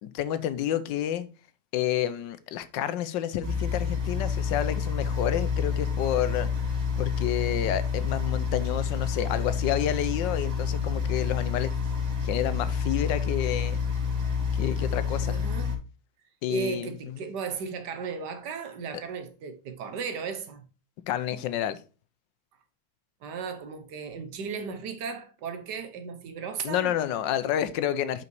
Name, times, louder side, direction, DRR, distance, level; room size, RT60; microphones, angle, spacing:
voice 1, 0.0-1.3 1.7-6.5 7.0-11.7 12.2-13.8 14.6-15.4 16.4-17.2 21.1-21.8 26.6-28.2, left 11 dB, 75° left, 1.3 m, -29 dB
sound 1, 3.4-15.8, left 6 dB, 80° right, 2.6 m, -28 dB
voice 2, 15.2-15.8 16.5-20.7 23.2-27.0, right 6 dB, 65° right, 1.6 m, -35 dB
5.6 x 5.3 x 4.5 m
omnidirectional pair, 2.1 m